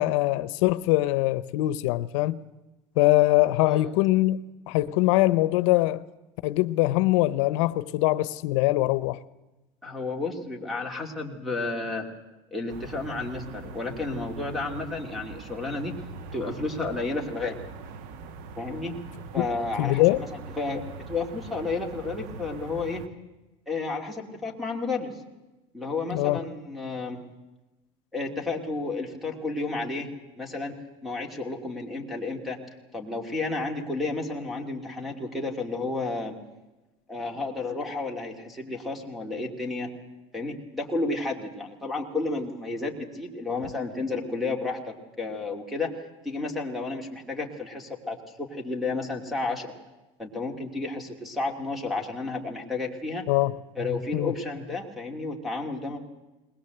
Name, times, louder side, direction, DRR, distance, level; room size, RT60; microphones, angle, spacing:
voice 1, 0.0-2.4 3.0-6.0 6.4-9.2 19.4-19.5 19.8-20.2 26.1-26.4 53.3-53.6 54.1-54.3, left 17 dB, 85° left, 0.8 m, -23 dB
voice 2, 9.8-12.1 12.5-16.0 16.3-17.6 18.6-19.0 19.3-23.1 23.7-25.1 25.7-27.2 28.1-30.8 31.0-32.6 32.9-36.4 37.1-39.9 40.3-45.9 46.2-49.7 50.2-53.3 53.8-56.0, left 3 dB, ahead, 2.5 m, -32 dB
sound 1, 12.7-23.1, right 4 dB, 60° right, 1.3 m, -42 dB
21.0 x 20.5 x 7.9 m
cardioid pair, 175°, 16 cm